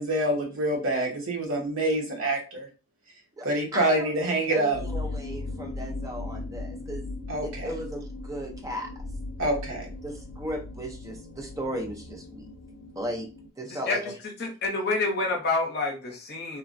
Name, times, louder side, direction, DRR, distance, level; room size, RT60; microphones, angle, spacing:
voice 1, 0.0-2.7 3.4-4.8 7.3-7.7 9.4-9.9, right 1 dB, 65° right, 0 dB, 0.9 m, -26 dB
voice 2, 3.7-7.1 7.4-8.9 10.0-12.5 13.0-13.3 13.6-14.1, equal, 15° right, 2 dB, 0.6 m, -36 dB
sound 1, 4.7-13.5, left 2 dB, 90° left, 0.4 m, -38 dB
voice 3, 13.7-14.1 14.4-16.6, left 3 dB, 50° left, 0 dB, 0.8 m, -28 dB
3.2 x 2.1 x 2.5 m, 0.33 s
head